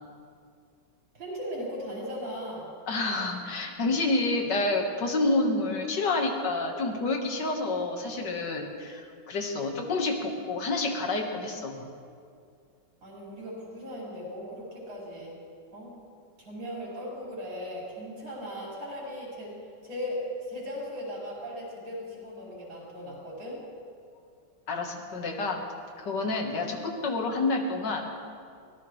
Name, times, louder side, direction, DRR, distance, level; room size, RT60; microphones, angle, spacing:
voice 1, 1.1-2.7 13.0-15.3 15.7-15.9 16.4-19.6 19.8-23.6, equal, 80° right, -6 dB, 5.7 m, -38 dB
voice 2, 2.9-11.9 24.7-25.6 26.0-28.0, left 2 dB, 65° left, 3 dB, 2.0 m, -29 dB
23.5 x 17.5 x 3.2 m, 2.3 s
omnidirectional pair, 2.1 m